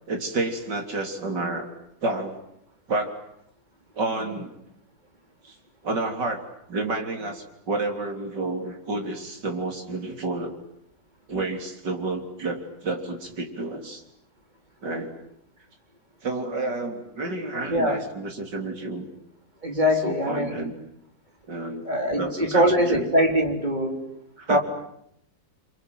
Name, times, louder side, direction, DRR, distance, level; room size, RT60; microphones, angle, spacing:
voice 1, 0.1-1.7 2.0-2.4 2.9-3.2 3.9-4.5 5.4-5.6 5.8-6.4 6.7-10.5 11.3-14.0 14.8-15.1 16.2-19.1 19.9-20.7 21.5-23.1 24.4-24.6, right 2 dB, 65° right, 4 dB, 4.1 m, -30 dB
voice 2, 17.7-18.0 19.6-20.6 21.9-24.0 24.5-24.6, equal, 25° right, 3 dB, 3.8 m, -22 dB
28.5 x 26.0 x 7.9 m, 0.76 s
omnidirectional pair, 2.0 m